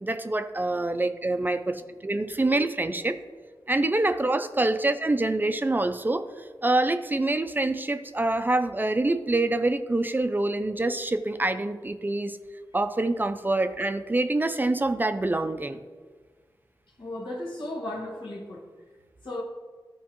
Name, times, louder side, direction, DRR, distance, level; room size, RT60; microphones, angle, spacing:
voice 1, 0.0-3.2 3.7-12.4 12.7-15.8, right 2 dB, 25° right, 9 dB, 0.4 m, -26 dB
voice 2, 17.0-18.6 19.2-19.4, left 1 dB, 80° left, -2 dB, 1.6 m, -35 dB
13.0 x 4.6 x 3.0 m, 1.5 s
wide cardioid pair, 80°, 8 cm